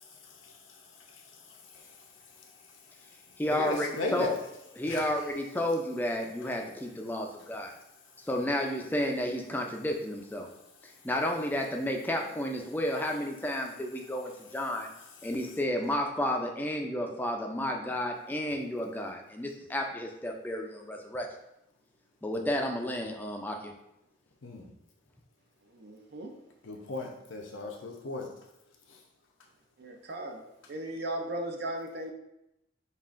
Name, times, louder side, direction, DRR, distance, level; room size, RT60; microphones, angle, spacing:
voice 1, 1.1-1.4 1.7-1.9 3.5-4.3 4.9-5.1 24.4-24.7 26.6-28.3, left 2 dB, 85° left, 1 dB, 0.7 m, -36 dB
voice 2, 3.4-4.3 4.8-7.7 8.2-10.5 10.8-14.9 15.2-21.3 22.2-23.7, left 1 dB, 10° left, 2 dB, 0.4 m, -32 dB
voice 3, 25.7-26.3 29.8-30.4 30.7-32.1, right 1 dB, 55° right, 3 dB, 0.5 m, -37 dB
5.4 x 2.4 x 2.5 m, 0.85 s
head